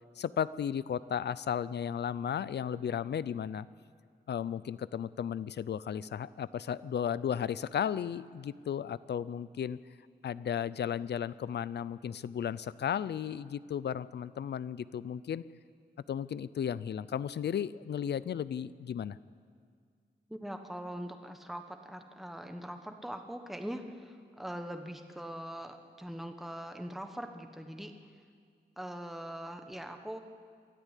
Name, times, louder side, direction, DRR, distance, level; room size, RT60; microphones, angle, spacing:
voice 1, 0.2-3.7 4.3-9.8 10.2-15.4 16.1-19.2, left 8 dB, 80° left, 17 dB, 0.5 m, -34 dB
voice 2, 20.3-28.1 28.8-30.2, equal, ahead, 5 dB, 1.1 m, -42 dB
23.5 x 14.5 x 8.3 m, 2.1 s
wide cardioid pair, 140°, 17 cm